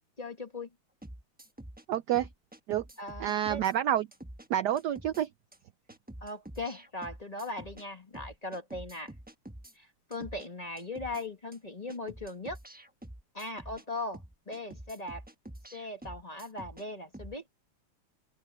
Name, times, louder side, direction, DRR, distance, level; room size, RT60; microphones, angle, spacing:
voice 1, 0.2-0.7 3.0-3.6 6.2-9.1 9.7-12.6 13.3-15.2 15.7-17.4, left 2 dB, 20° left, 1.5 m, -39 dB
sound 1, 1.0-1.8 2.1-3.7 4.1-4.5 4.8-5.2 5.5-5.6 5.9-7.8 8.1-9.7 10.1-10.5 10.8-11.2 11.5-11.6 11.9-13.8 14.1-16.8 17.1-17.3, right 1 dB, 10° right, 0.5 m, -47 dB
voice 2, 1.9-2.3 2.7-2.8 3.2-4.1 4.5-5.3, right 11 dB, 80° right, 0.9 m, -28 dB
open air
omnidirectional pair, 2.4 m